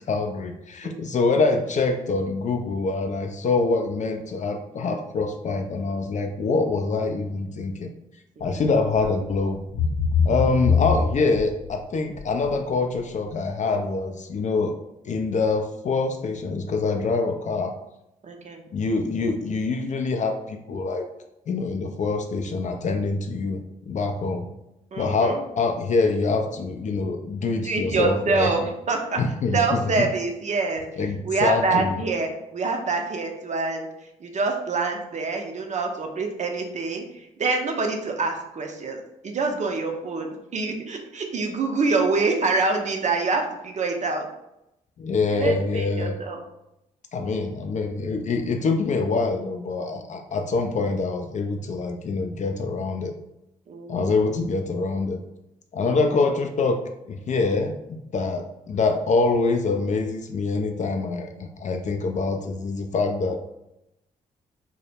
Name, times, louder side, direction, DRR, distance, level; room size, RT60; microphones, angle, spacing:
voice 1, 0.1-7.9 8.4-9.6 10.2-14.7 15.0-17.7 18.7-21.1 21.5-24.5 25.0-28.5 29.2-30.1 31.0-32.0 45.0-46.2 47.1-53.1 53.9-55.2 55.7-56.8 57.1-63.4, left 3 dB, 40° left, 4 dB, 0.4 m, -25 dB
sound 1, 8.4-8.7 8.9-9.4 9.7-11.7 12.1-12.5 13.0-13.1, left 6 dB, 65° left, 0.7 m, -23 dB
voice 2, 18.2-18.6 24.9-25.4 27.6-29.2 29.5-30.8 31.2-33.9 34.2-37.0 37.4-40.3 40.5-44.3 45.3-46.4 53.7-54.2 55.9-56.1, right 3 dB, 40° right, 3 dB, 0.5 m, -26 dB
2.1 x 2.0 x 3.2 m, 0.86 s
hypercardioid pair, 40°, 19 cm